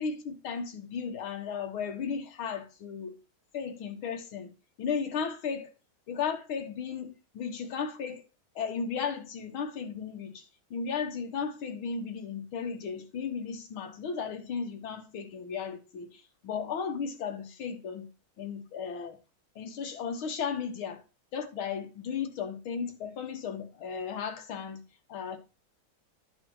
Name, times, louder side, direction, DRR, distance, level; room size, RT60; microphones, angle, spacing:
voice 1, 0.0-3.1 3.5-4.5 4.8-5.7 6.1-8.2 8.6-10.4 10.7-18.1 18.4-19.2 19.6-21.0 21.3-24.8 25.1-25.4, left 6 dB, 85° left, 2.2 m, -35 dB
10.5 x 5.0 x 4.6 m
omnidirectional pair, 2.2 m